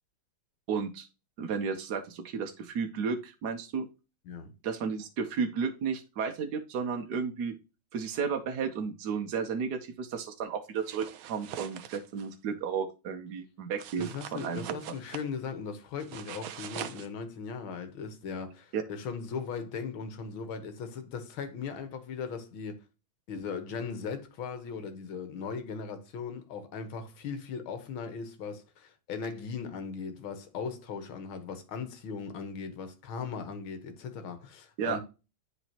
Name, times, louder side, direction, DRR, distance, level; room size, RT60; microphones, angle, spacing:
voice 1, 0.7-1.1 1.4-3.9 4.6-7.5 7.9-14.6 18.7-18.8 34.8-35.0, right 6 dB, 60° right, 1.3 m, -33 dB
sound 1, 10.8-12.3 13.8-15.3 16.0-17.1, right 10 dB, 85° right, 1.5 m, -42 dB
voice 2, 14.0-22.8 23.3-35.0, left 5 dB, 80° left, 1.9 m, -38 dB
10.0 x 4.0 x 2.8 m
omnidirectional pair, 2.2 m